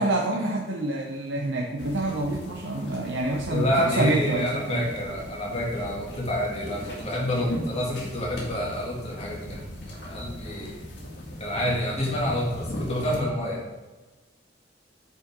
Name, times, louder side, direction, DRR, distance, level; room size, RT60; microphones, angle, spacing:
voice 1, 0.0-4.8, right 2 dB, 75° right, 0 dB, 0.8 m, -27 dB
sound 1, 1.8-13.2, equal, 65° left, 2.1 m, -38 dB
voice 2, 3.5-9.6 9.9-10.8 11.4-13.6, left 1 dB, 35° left, -4 dB, 2.3 m, -28 dB
9.1 x 5.7 x 3.7 m, 1.2 s
head